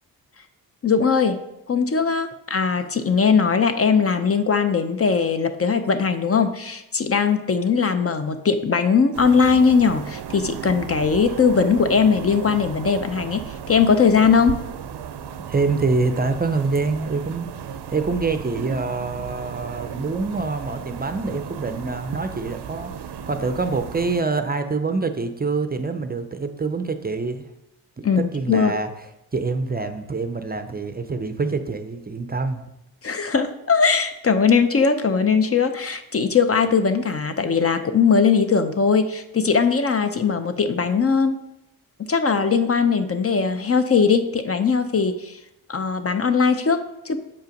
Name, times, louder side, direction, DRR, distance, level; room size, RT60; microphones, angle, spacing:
voice 1, 0.8-1.4 1.7-14.6 28.0-28.7 33.0-41.4 42.1-45.4 45.7-47.2, left 5 dB, 35° left, 9 dB, 0.5 m, -20 dB
sound 1, 9.1-24.2, right 8 dB, 85° right, 0.6 m, -35 dB
voice 2, 15.5-17.5 17.9-22.9 23.3-27.5 28.0-28.9 29.3-32.6, right 3 dB, 25° right, 8 dB, 0.5 m, -25 dB
6.9 x 5.5 x 5.1 m, 0.90 s
wide cardioid pair, 120°, 40 cm